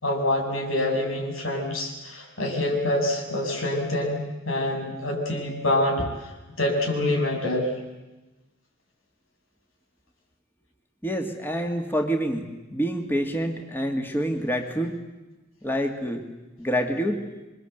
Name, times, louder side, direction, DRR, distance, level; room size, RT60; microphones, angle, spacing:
voice 1, 0.0-6.3 6.6-7.7, left 1 dB, 90° left, 2 dB, 7.0 m, -26 dB
voice 2, 11.0-15.0 15.6-16.2 16.6-17.3, equal, 10° left, 4 dB, 2.2 m, -27 dB
28.0 x 23.5 x 8.1 m, 1.1 s
head